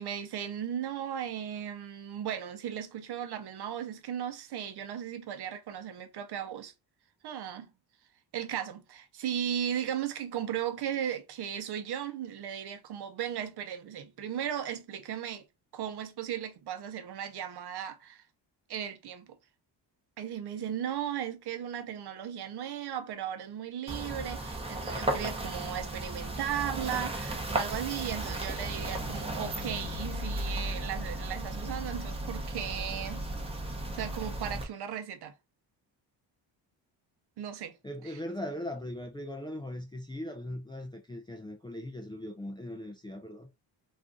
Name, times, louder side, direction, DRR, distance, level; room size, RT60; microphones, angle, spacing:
voice 1, 0.0-6.7 7.2-7.7 8.3-15.4 15.7-18.2 18.7-19.3 20.2-33.2 33.9-35.3 37.4-37.8 38.0-38.2, right 9 dB, 60° right, 0.7 m, -36 dB
sound 1, 23.9-34.6, right 1 dB, 15° right, 0.8 m, -35 dB
voice 2, 37.8-43.5, left 1 dB, 10° left, 0.3 m, -39 dB
2.6 x 2.4 x 3.7 m
cardioid pair, 100°, 44 cm